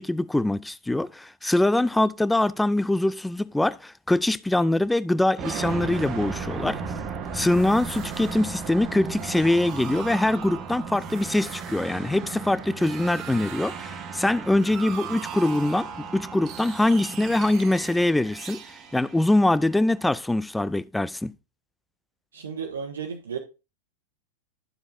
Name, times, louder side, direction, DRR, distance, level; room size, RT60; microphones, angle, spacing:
voice 1, 0.0-6.8 7.3-18.6 18.9-21.3, left 1 dB, 5° left, 0.3 m, -23 dB
sound 1, 5.4-20.1, right 6 dB, 30° right, 1.3 m, -35 dB
voice 2, 22.3-23.4, right 6 dB, 65° right, 1.2 m, -33 dB
11.5 x 7.2 x 2.5 m
figure-of-eight pair, 90°, 0 cm